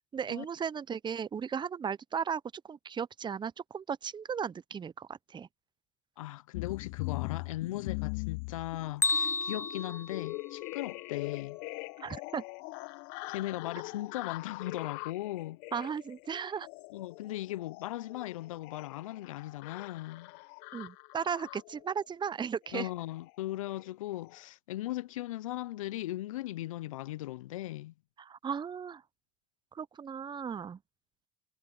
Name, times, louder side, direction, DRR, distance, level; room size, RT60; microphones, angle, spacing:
voice 1, 0.1-5.5 12.0-12.4 15.7-16.7 20.7-22.9 28.2-29.0 29.7-30.8, right 7 dB, 25° right, 0.8 m, -36 dB
voice 2, 6.2-11.6 13.3-15.6 16.9-20.3 22.7-27.9, left 15 dB, 80° left, 0.6 m, -38 dB
sound 1, 6.5-21.9 22.7-22.9 23.2-23.4 23.7-23.9 24.2-24.4, left 28 dB, 65° left, 1.0 m, -42 dB
Bell, 9.0-11.0, left 3 dB, 15° left, 0.5 m, -32 dB
hypercardioid pair, 70°, 17 cm